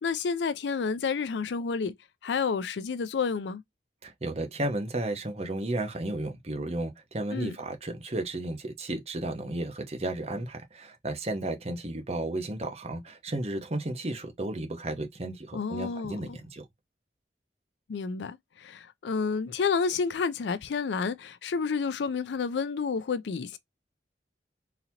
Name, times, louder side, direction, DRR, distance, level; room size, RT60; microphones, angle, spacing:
voice 1, 0.0-1.9 2.2-3.6 7.3-7.5 15.5-16.4 17.9-23.6, left 5 dB, 80° left, 0.4 m, -30 dB
voice 2, 4.0-16.6, right 1 dB, 35° right, 0.9 m, -33 dB
3.9 x 2.9 x 2.8 m
head